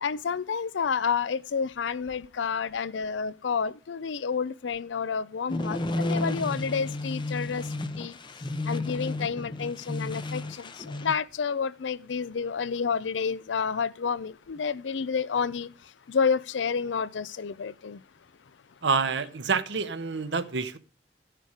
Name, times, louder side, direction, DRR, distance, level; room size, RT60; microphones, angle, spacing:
voice 1, 0.0-7.7 8.0-8.2 8.7-15.7 16.1-18.0, left 6 dB, 80° left, 0.5 m, -29 dB
sound 1, 5.5-11.2, left 2 dB, 25° left, 0.7 m, -32 dB
voice 2, 18.8-20.8, right 5 dB, 70° right, 0.8 m, -27 dB
13.5 x 6.8 x 4.8 m
head